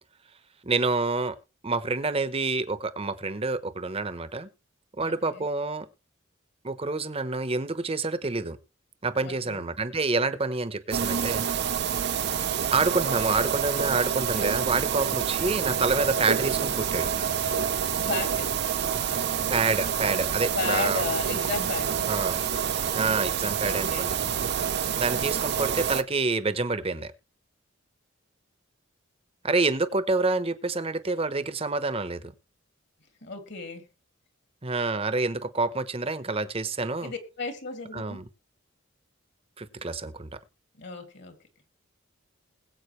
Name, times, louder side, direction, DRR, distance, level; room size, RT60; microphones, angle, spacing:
voice 1, 0.6-1.4 1.6-4.5 5.0-5.9 6.6-8.6 9.0-11.5 12.7-17.1 19.5-21.0 22.1-22.4 22.9-24.1 24.9-27.1 29.4-32.3 34.6-37.1 37.9-38.2 39.6-40.4, right 3 dB, 30° right, 0.9 m, -27 dB
voice 2, 5.0-5.5 9.1-9.6 14.6-14.8 18.0-18.6 18.9-19.1 20.5-22.1 23.6-24.1 33.2-33.9 37.0-38.2 40.7-41.4, left 3 dB, 60° left, 2.5 m, -34 dB
sound 1, 10.9-26.0, right 8 dB, 55° right, 0.6 m, -27 dB
21.0 x 7.8 x 3.2 m
head